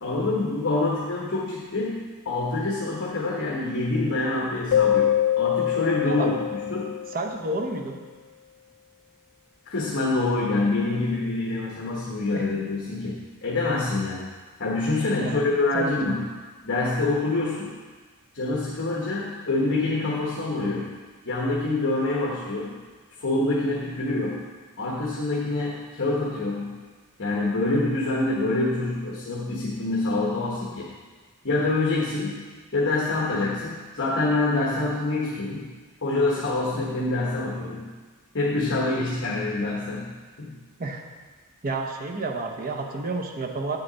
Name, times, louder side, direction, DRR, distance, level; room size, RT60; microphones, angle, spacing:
voice 1, 0.0-7.0 9.7-14.3 14.6-16.3 16.6-17.7 18.3-20.9 21.2-22.7 23.2-24.4 24.8-26.8 27.2-30.9 31.4-32.4 32.7-35.7 36.0-37.9 38.3-40.6, left 2 dB, 55° left, -4 dB, 1.2 m, -26 dB
Keyboard (musical), 4.7-7.4, left 11 dB, 75° left, 0.3 m, -24 dB
voice 2, 7.1-8.0 12.3-12.5 15.2-15.4 15.7-16.1 40.8-41.0 41.6-43.8, right 2 dB, 40° right, 2 dB, 0.8 m, -30 dB
8.6 x 6.8 x 4.1 m, 1.4 s
head